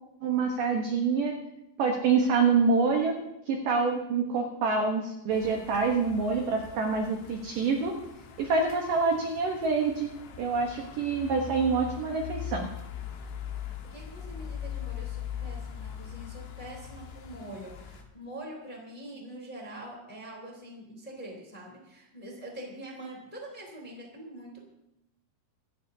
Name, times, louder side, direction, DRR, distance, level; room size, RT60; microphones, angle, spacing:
voice 1, 0.2-1.3 1.8-3.1 3.5-7.9 8.4-10.1 10.4-12.7, right 4 dB, 75° right, 2 dB, 2.0 m, -26 dB
sound 1, 5.3-18.0, left 8 dB, 75° left, 3.8 m, -41 dB
voice 2, 13.6-24.6, right 1 dB, 10° left, -2 dB, 1.9 m, -44 dB
26.5 x 13.5 x 2.8 m, 0.90 s
omnidirectional pair, 5.5 m